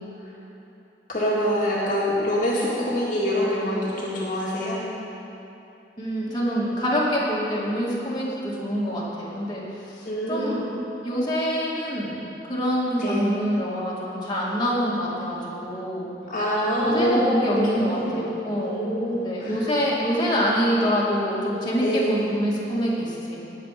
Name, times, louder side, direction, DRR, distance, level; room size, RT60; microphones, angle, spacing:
voice 1, 1.1-4.8 10.1-10.6 13.0-13.3 16.3-19.6 21.8-22.1, equal, 45° left, -6 dB, 2.0 m, -25 dB
voice 2, 6.0-10.6 11.0-12.2 12.5-16.1 16.8-18.9 19.2-23.4, equal, 25° left, -7 dB, 2.3 m, -26 dB
19.0 x 7.6 x 5.1 m, 3.0 s
head